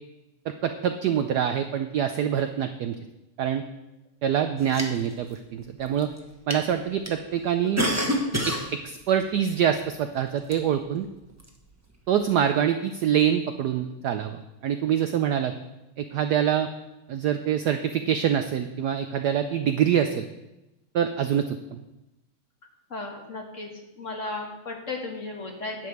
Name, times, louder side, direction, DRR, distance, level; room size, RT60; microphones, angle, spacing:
voice 1, 0.5-2.9 3.4-3.6 4.2-6.1 6.5-7.8 8.5-11.1 12.1-15.5 16.0-16.7 17.1-20.3 20.9-21.6, right 9 dB, 75° right, 8 dB, 0.9 m, -25 dB
sound 1, 4.6-5.3 5.9-6.2 6.5-6.6 7.1-7.2 7.6-8.7 9.2-9.3 10.5-10.6 11.3-11.5, equal, 10° right, 0.8 m, -27 dB
voice 2, 22.9-23.7 24.0-25.9, left 2 dB, 40° left, 2 dB, 1.5 m, -35 dB
10.5 x 5.3 x 8.0 m, 0.97 s
omnidirectional pair, 2.3 m